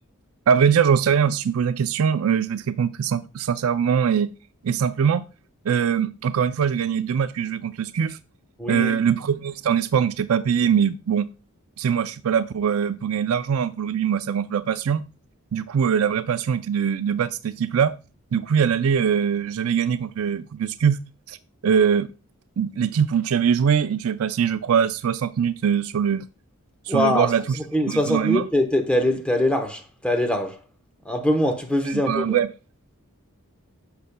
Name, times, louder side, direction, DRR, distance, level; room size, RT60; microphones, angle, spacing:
voice 1, 0.5-4.3 4.6-5.2 5.6-8.2 8.7-11.3 11.8-15.0 15.5-17.9 18.3-21.0 21.3-21.4 21.6-22.1 22.6-26.3 26.9-27.6 27.9-28.4 31.8-32.5, right 7 dB, 65° right, 0.4 m, -22 dB
voice 2, 8.6-8.9 26.9-27.3 27.7-30.6 31.0-32.4, left 1 dB, 5° left, 0.9 m, -22 dB
10.5 x 6.7 x 2.2 m
head